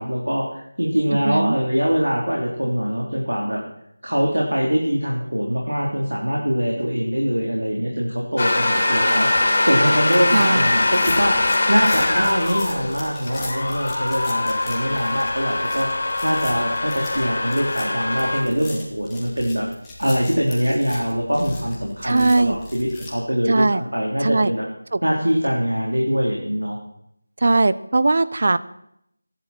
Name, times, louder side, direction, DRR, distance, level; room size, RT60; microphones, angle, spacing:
voice 1, 0.0-3.6 4.0-9.3 9.6-15.9 16.2-19.7 20.0-24.7 25.0-26.8, equal, 80° right, -2 dB, 3.7 m, -23 dB
voice 2, 1.2-1.6 10.3-10.7 22.0-22.6 23.5-23.8 24.2-24.5 24.9-25.0 27.4-28.6, right 2 dB, 45° right, 15 dB, 0.8 m, -19 dB
sound 1, 8.4-18.4, left 2 dB, 45° left, 3.9 m, -22 dB
sound 2, 10.0-23.1, left 2 dB, 5° left, 2.4 m, -39 dB
26.5 x 11.0 x 4.5 m, 0.74 s
figure-of-eight pair, 165°, 0 cm